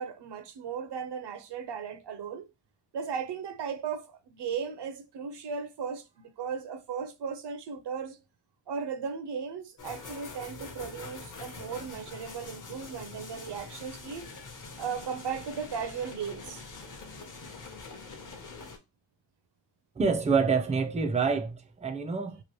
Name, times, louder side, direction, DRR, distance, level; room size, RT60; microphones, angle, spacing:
voice 1, 0.0-2.5 2.9-8.2 8.7-14.3 14.8-16.6, right 6 dB, 60° right, 0.5 m, -36 dB
sound 1, 9.8-18.8, left 4 dB, 40° left, 0.7 m, -44 dB
voice 2, 20.0-22.4, right 5 dB, 15° right, 0.4 m, -27 dB
3.0 x 2.4 x 2.9 m
wide cardioid pair, 85°, 47 cm